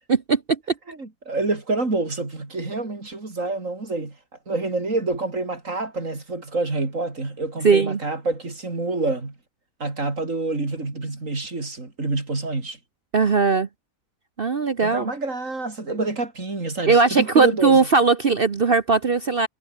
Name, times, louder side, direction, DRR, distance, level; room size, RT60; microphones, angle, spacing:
voice 1, 0.1-0.6 7.6-8.0 13.1-13.7 14.4-15.1 16.9-19.5, right 4 dB, 40° right, 1.2 m, -19 dB
voice 2, 0.9-4.2 4.5-9.4 9.8-12.8 14.8-17.8, right 3 dB, 60° right, 4.3 m, -27 dB
omnidirectional pair, 1.6 m